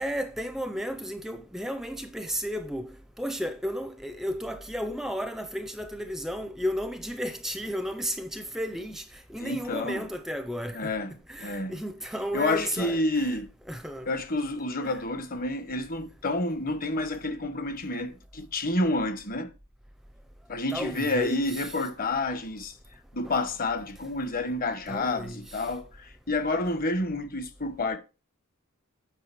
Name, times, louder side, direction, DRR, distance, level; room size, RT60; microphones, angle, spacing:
voice 1, 0.0-10.9 11.3-13.4 13.7-14.1 14.8-15.0 20.7-21.8 23.2-23.3 24.9-25.7, equal, ahead, 0.5 m, -34 dB
voice 2, 9.4-10.0 10.7-11.1 11.4-11.8 12.3-13.5 14.1-19.5 20.5-22.7 23.1-28.0, left 2 dB, 40° left, 1.1 m, -29 dB
8.7 x 5.0 x 6.0 m
head